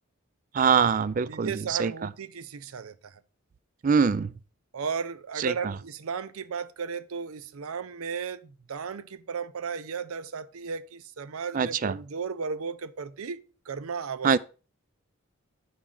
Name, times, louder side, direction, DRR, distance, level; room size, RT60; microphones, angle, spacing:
voice 1, 0.5-2.1 3.8-4.3 5.4-5.7 11.5-11.9 14.2-14.4, right 6 dB, 40° right, 0.3 m, -24 dB
voice 2, 1.3-3.1 4.7-14.4, right 5 dB, 85° right, 0.6 m, -35 dB
8.6 x 6.1 x 3.8 m
head